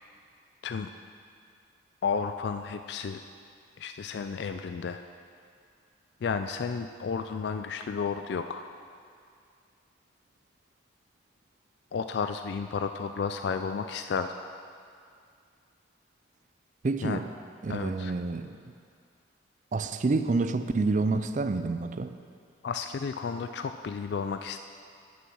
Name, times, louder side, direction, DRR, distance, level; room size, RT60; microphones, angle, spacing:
voice 1, 2.0-3.2 3.8-5.0 6.2-8.7 11.9-14.3 17.0-17.2 17.7-18.1 22.6-24.6, left 5 dB, 60° left, 8 dB, 0.3 m, -32 dB
voice 2, 16.8-17.3 17.6-18.6 19.7-22.1, right 3 dB, 40° right, 10 dB, 0.4 m, -28 dB
9.3 x 6.9 x 6.3 m, 2.3 s
head